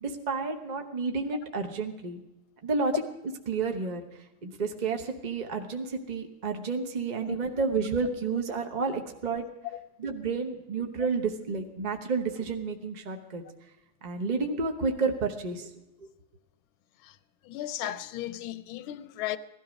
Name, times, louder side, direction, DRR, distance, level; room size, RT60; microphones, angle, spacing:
voice 1, 0.0-2.2 2.6-3.0 3.5-4.0 4.4-9.4 10.0-13.4 14.0-15.7, right 4 dB, 40° right, 0.6 m, -30 dB
voice 2, 17.4-19.4, left 13 dB, 85° left, 1.5 m, -35 dB
17.0 x 13.0 x 5.1 m
omnidirectional pair, 2.3 m